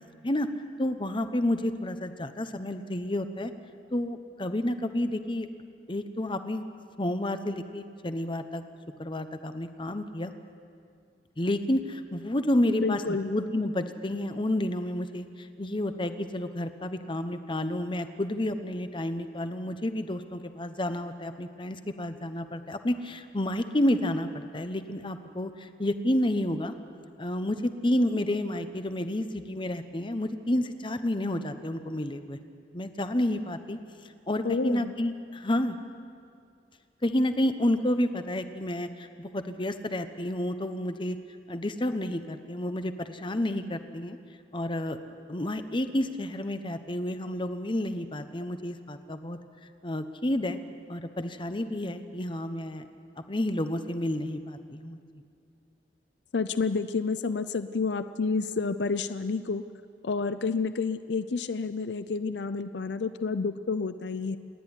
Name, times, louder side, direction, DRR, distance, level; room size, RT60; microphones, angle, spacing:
voice 1, 0.8-3.5 3.9-5.5 5.9-6.6 7.0-8.6 9.0-10.3 11.4-26.7 27.2-32.4 32.7-33.8 34.3-35.8 37.0-41.2 41.5-44.2 44.5-45.0 45.3-49.4 49.8-50.6 50.9-52.8 53.3-55.0, left 1 dB, 30° left, 9 dB, 1.0 m, -30 dB
voice 2, 12.7-13.3 34.4-34.9 56.3-59.6 60.0-64.4, left 4 dB, 80° left, 12 dB, 0.5 m, -29 dB
28.5 x 10.5 x 9.9 m, 2.3 s
head